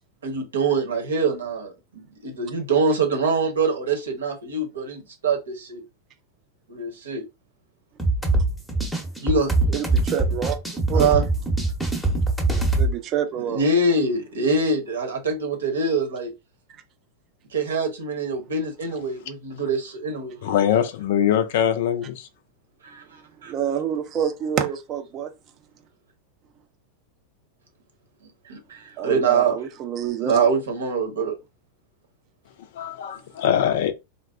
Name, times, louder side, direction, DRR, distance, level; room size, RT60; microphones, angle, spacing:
voice 1, 0.2-5.8 6.7-7.2 9.2-9.5 10.9-11.2 13.5-16.3 17.5-20.4 22.8-23.5 28.5-29.5 30.2-31.3, right 3 dB, 65° right, 0.9 m, -24 dB
sound 1, 8.0-12.9, right 2 dB, 5° left, 0.8 m, -23 dB
voice 2, 9.7-11.1 12.8-13.7 16.7-16.8 23.4-25.3 29.0-30.4, right 8 dB, 35° right, 0.5 m, -27 dB
voice 3, 20.4-22.3 32.8-33.9, left 9 dB, 55° left, 0.4 m, -22 dB
3.9 x 2.1 x 2.4 m
figure-of-eight pair, 90°, 0 cm